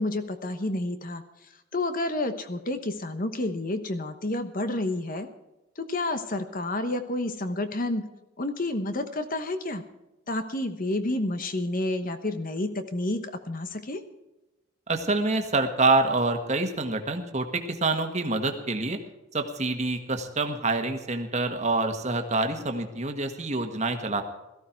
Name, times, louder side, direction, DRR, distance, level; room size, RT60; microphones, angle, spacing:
voice 1, 0.0-5.3 5.8-8.1 8.4-9.8 10.3-14.0, left 2 dB, 40° left, 9 dB, 1.1 m, -30 dB
voice 2, 14.9-19.0 19.3-24.2, right 3 dB, 30° right, 6 dB, 1.6 m, -26 dB
17.0 x 14.5 x 4.6 m, 1.0 s
head